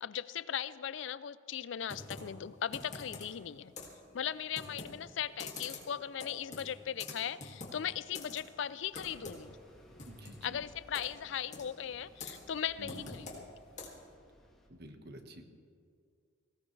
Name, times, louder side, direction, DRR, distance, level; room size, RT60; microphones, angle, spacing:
voice 1, 0.0-3.7 4.1-9.6 10.4-13.5, left 9 dB, 65° left, 17 dB, 0.4 m, -38 dB
Computer keyboard, 1.9-14.1, left 3 dB, 35° left, 2.3 m, -48 dB
Bus, 8.9-14.7, equal, ahead, 1.9 m, -60 dB
voice 2, 10.0-10.6 12.8-13.2 14.7-15.5, equal, 55° right, 5 dB, 1.4 m, -49 dB
19.0 x 17.5 x 3.3 m, 2.2 s
head